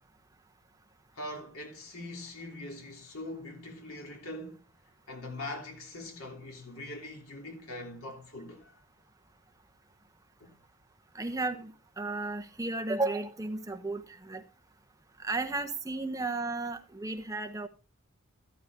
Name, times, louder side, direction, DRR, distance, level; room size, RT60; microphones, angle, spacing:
voice 1, 1.1-4.7 5.1-8.7 10.4-10.6, left 1 dB, 90° left, 3.1 m, -42 dB
voice 2, 11.1-11.7 12.0-14.4 15.2-17.7, right 3 dB, 15° right, 1.0 m, -33 dB
13.5 x 13.5 x 2.6 m
head